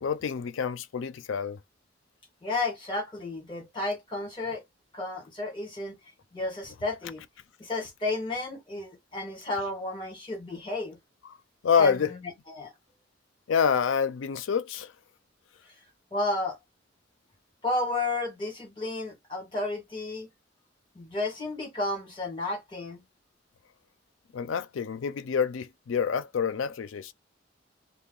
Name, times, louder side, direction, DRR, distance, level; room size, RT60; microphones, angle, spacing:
voice 1, 0.0-1.6 11.6-12.1 13.5-14.9 24.3-27.1, left 6 dB, 85° left, 0.4 m, -27 dB
voice 2, 2.4-4.6 4.9-6.0 6.3-7.2 7.6-11.0 11.8-12.0 12.5-12.7 16.1-16.6 17.6-20.3 20.9-23.0, left 2 dB, 25° left, 1.6 m, -32 dB
2.7 x 2.1 x 3.8 m
head